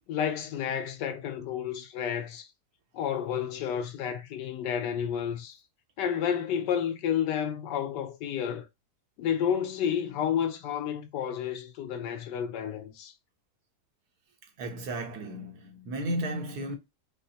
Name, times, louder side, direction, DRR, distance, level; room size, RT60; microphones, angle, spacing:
voice 1, 0.1-2.5 2.9-5.6 6.0-8.7 9.2-13.1, left 8 dB, 85° left, 1.3 m, -31 dB
voice 2, 14.6-16.8, right 1 dB, 70° right, 1.4 m, -34 dB
5.2 x 2.1 x 2.7 m
omnidirectional pair, 1.8 m